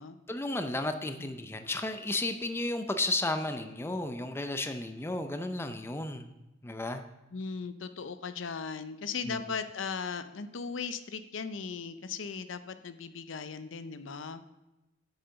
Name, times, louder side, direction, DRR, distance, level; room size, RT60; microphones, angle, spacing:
voice 1, 0.3-6.3 6.6-7.0 9.3-9.4, left 2 dB, 15° left, 7 dB, 0.5 m, -33 dB
voice 2, 7.3-14.4, left 5 dB, 85° left, 11 dB, 0.6 m, -38 dB
8.2 x 6.5 x 5.7 m, 1.0 s
head